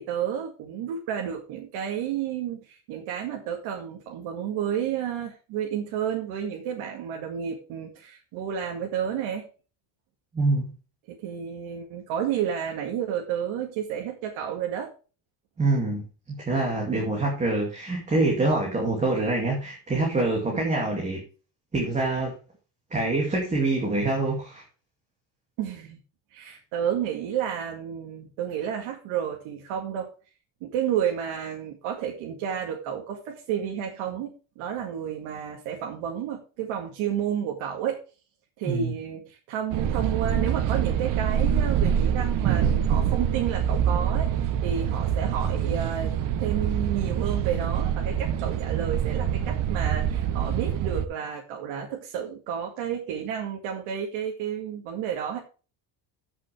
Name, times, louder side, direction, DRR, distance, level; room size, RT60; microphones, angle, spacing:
voice 1, 0.0-9.5 11.1-14.9 16.9-17.3 20.5-20.7 25.6-26.0 26.3-30.1 30.6-38.0 38.6-55.4, right 9 dB, 90° right, 1 dB, 2.2 m, -31 dB
voice 2, 10.3-10.7 15.6-21.2 21.7-22.3 22.9-24.6 38.7-38.9, right 2 dB, 15° right, -1 dB, 2.4 m, -25 dB
sound 1, 39.7-51.1, right 9 dB, 40° right, 0.8 m, -25 dB
14.5 x 6.1 x 3.4 m, 0.34 s
cardioid pair, 180°, 47 cm